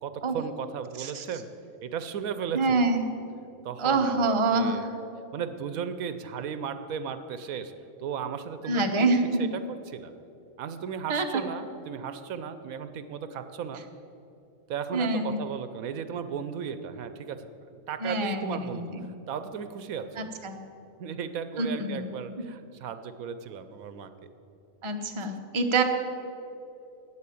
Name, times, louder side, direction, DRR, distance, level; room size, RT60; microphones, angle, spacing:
voice 1, 0.0-1.5 1.8-2.9 3.6-4.9 5.3-7.7 8.0-9.1 9.4-10.1 10.6-13.8 14.7-17.5 17.9-20.3 21.0-24.1 25.2-25.3, right 7 dB, 75° right, 10 dB, 1.1 m, -35 dB
voice 2, 2.5-3.1 3.8-4.8 8.6-9.5 11.1-11.4 14.9-15.4 18.0-19.0 20.2-20.6 21.6-22.1 24.8-25.8, right 3 dB, 25° right, 4 dB, 0.8 m, -26 dB
11.5 x 8.8 x 8.5 m, 2.8 s
omnidirectional pair, 1.5 m